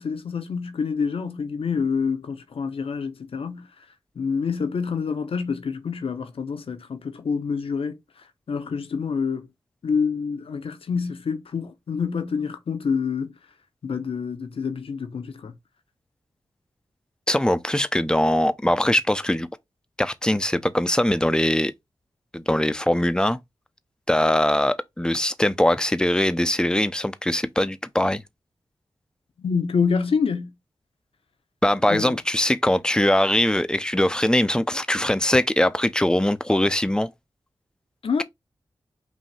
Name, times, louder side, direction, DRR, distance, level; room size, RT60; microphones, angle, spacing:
voice 1, 0.0-3.7 4.2-8.0 8.5-9.5 9.8-13.3 13.8-15.5 29.4-30.5 31.9-32.2 38.0-38.2, left 5 dB, 75° left, 0.8 m, -27 dB
voice 2, 17.3-19.5 20.0-21.7 22.3-23.4 24.1-28.2 31.6-37.1, left 1 dB, 10° left, 0.6 m, -21 dB
5.2 x 2.8 x 3.3 m
cardioid pair, 45°, 10 cm